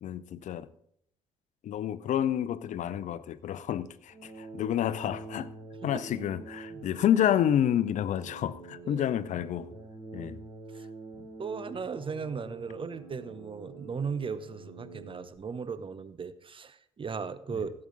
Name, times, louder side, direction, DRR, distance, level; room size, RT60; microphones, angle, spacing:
voice 1, 0.0-0.7 1.6-5.5 5.8-9.7 10.1-10.4 17.5-17.6, left 10 dB, 55° left, 0.7 m, -29 dB
sound 1, 4.1-15.4, right 3 dB, 20° right, 6.0 m, -46 dB
voice 2, 11.4-17.7, right 5 dB, 35° right, 0.8 m, -37 dB
17.0 x 8.7 x 4.0 m
hypercardioid pair, 50°, 15 cm